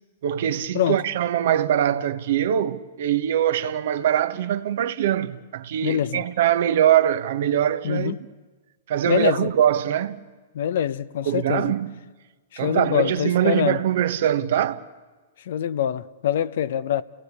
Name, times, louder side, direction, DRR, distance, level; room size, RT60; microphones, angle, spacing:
voice 1, 0.2-8.2 8.9-10.2 11.2-12.0 12.6-14.8, right 10 dB, 65° right, 1.2 m, -22 dB
voice 2, 5.8-6.2 7.8-8.2 9.1-9.5 10.5-11.8 12.5-13.8 15.4-17.0, left 10 dB, 65° left, 0.8 m, -24 dB
30.0 x 17.5 x 8.4 m
hypercardioid pair, 125°, 0 cm